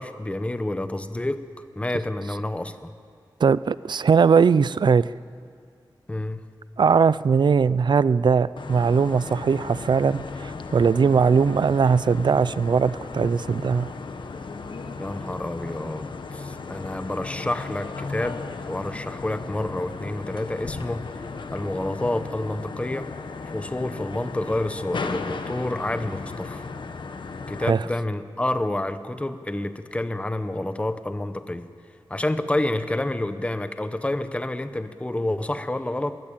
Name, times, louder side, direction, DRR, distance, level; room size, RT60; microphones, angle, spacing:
voice 1, 0.0-2.9 6.1-6.5 15.0-21.1 21.5-23.1 23.5-26.7 27.5-31.7 32.1-36.2, left 1 dB, 15° left, 10 dB, 0.9 m, -29 dB
voice 2, 3.4-5.1 6.8-13.9 27.6-27.8, right 5 dB, 65° right, 18 dB, 0.5 m, -20 dB
sound 1, 8.6-27.7, left 4 dB, 70° left, 1.1 m, -35 dB
22.5 x 16.0 x 8.9 m, 2.2 s
wide cardioid pair, 110°, 8 cm